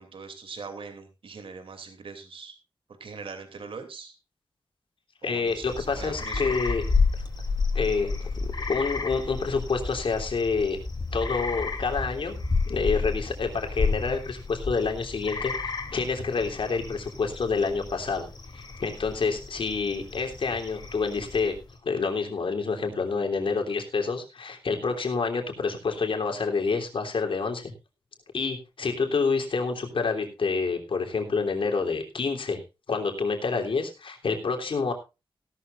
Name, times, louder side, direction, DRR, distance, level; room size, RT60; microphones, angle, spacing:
voice 1, 0.0-2.5 3.0-4.2 5.2-6.6 8.1-8.3, right 5 dB, 70° right, 7 dB, 2.8 m, -41 dB
voice 2, 5.2-6.8 7.7-10.8 11.1-12.3 12.7-18.3 18.5-21.6 21.8-27.7 28.3-32.6 32.9-34.9, left 4 dB, 70° left, 3 dB, 3.3 m, -28 dB
sound 1, 5.5-21.7, left 4 dB, 45° left, 3.0 m, -31 dB
16.5 x 12.5 x 2.5 m, 0.28 s
wide cardioid pair, 110°, 9 cm